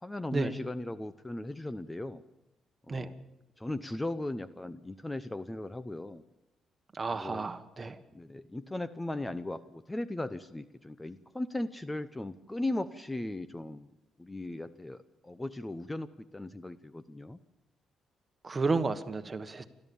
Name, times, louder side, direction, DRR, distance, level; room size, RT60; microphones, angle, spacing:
voice 1, 0.0-2.2 2.9-3.2 3.6-6.2 7.1-7.5 8.1-13.9 14.2-15.0 15.2-17.4, left 1 dB, 15° left, 13 dB, 0.7 m, -37 dB
voice 2, 6.9-8.0 18.4-19.6, right 3 dB, 30° right, 9 dB, 1.5 m, -32 dB
29.0 x 13.0 x 7.0 m, 0.95 s
cardioid pair, 90°, 0 cm